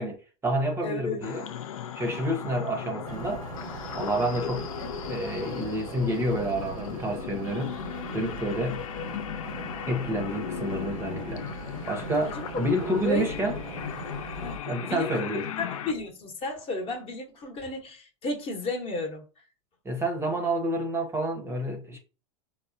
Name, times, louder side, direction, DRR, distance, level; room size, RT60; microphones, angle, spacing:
voice 1, 0.0-1.5 1.9-3.4 3.9-4.7 5.1-7.8 8.1-8.9 9.9-11.4 11.9-13.6 14.6-15.5 19.8-22.0, right 1 dB, 15° right, 0.6 m, -29 dB
voice 2, 0.8-1.2 10.3-10.4 12.2-12.7 13.0-13.2 14.4-15.1 15.6-19.2, left 2 dB, 35° left, 0.9 m, -33 dB
sound 1, 1.2-15.9, left 9 dB, 80° left, 0.4 m, -37 dB
sound 2, 3.1-14.6, right 4 dB, 80° right, 0.7 m, -40 dB
3.6 x 2.1 x 2.6 m
hypercardioid pair, 105°, 17 cm